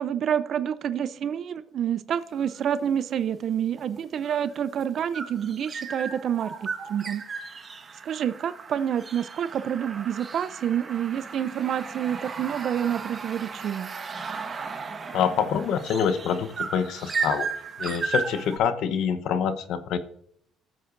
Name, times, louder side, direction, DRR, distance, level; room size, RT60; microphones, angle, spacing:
voice 1, 0.0-7.2 8.0-13.9, right 9 dB, 55° right, 14 dB, 0.4 m, -28 dB
sound 1, 2.3-2.7 3.8-18.6, right 5 dB, 30° right, 1.3 m, -35 dB
voice 2, 15.1-17.5 17.8-20.0, left 7 dB, 70° left, 12 dB, 0.9 m, -26 dB
15.5 x 7.7 x 2.5 m, 0.67 s
cardioid pair, 110°, 0 cm